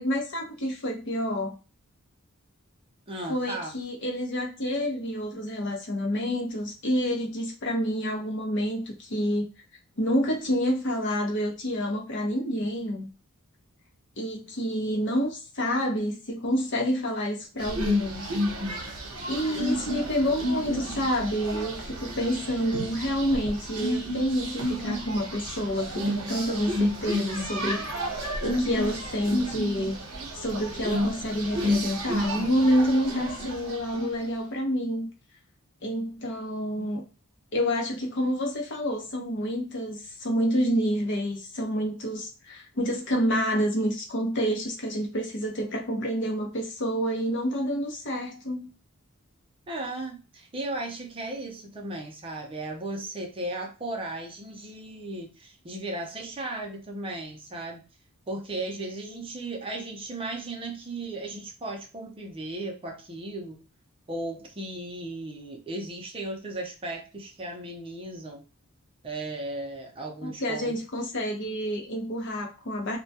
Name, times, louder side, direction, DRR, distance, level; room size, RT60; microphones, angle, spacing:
voice 1, 0.0-1.5 3.3-9.4 10.0-13.1 14.2-18.3 19.3-27.9 28.4-30.0 30.3-35.1 35.8-37.0 37.5-48.7 70.2-73.0, equal, 55° left, 2 dB, 0.7 m, -28 dB
voice 2, 3.1-3.7 49.7-57.9 58.3-63.6 64.1-68.4 69.0-70.8, right 2 dB, 25° right, 1 dB, 0.5 m, -36 dB
sound 1, 17.6-34.3, equal, 75° right, 0.8 m, -31 dB
2.2 x 2.2 x 2.6 m, 0.33 s
head